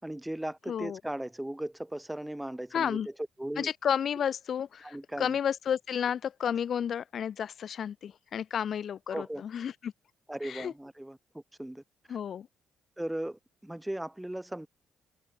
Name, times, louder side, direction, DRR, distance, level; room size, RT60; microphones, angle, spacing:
voice 1, 0.0-3.1 3.4-3.7 4.8-5.4 9.1-9.4 10.3-11.8 12.1-12.2 13.0-14.7, right 1 dB, 5° right, 6.8 m, -37 dB
voice 2, 0.7-1.0 2.7-3.1 3.6-9.9 10.4-10.7 12.1-12.5, left 8 dB, 60° left, 3.4 m, -32 dB
open air
cardioid pair, 90°, 0 cm